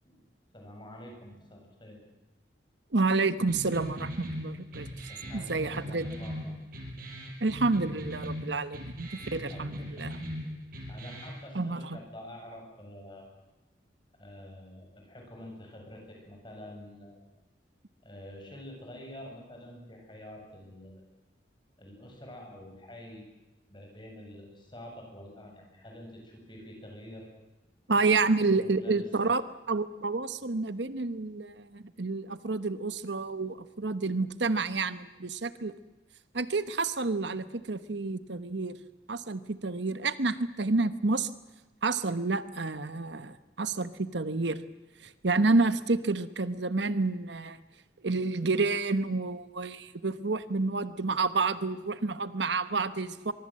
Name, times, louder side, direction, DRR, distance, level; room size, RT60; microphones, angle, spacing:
voice 1, 0.5-2.0 5.1-6.5 9.5-10.5 10.9-13.3 14.2-17.2 18.0-21.1 21.8-23.2 23.7-27.3 28.2-29.4, left 1 dB, 25° left, 1 dB, 7.7 m, -47 dB
voice 2, 2.9-6.1 7.4-10.2 11.5-12.0 27.9-29.4 29.7-35.7 36.3-38.8 39.1-41.3 41.8-44.6 45.0-47.6 48.0-53.3, right 3 dB, 75° right, 12 dB, 1.1 m, -29 dB
sound 1, 3.5-11.4, equal, 50° right, 6.0 m, -39 dB
24.0 x 23.5 x 7.7 m, 1.0 s
head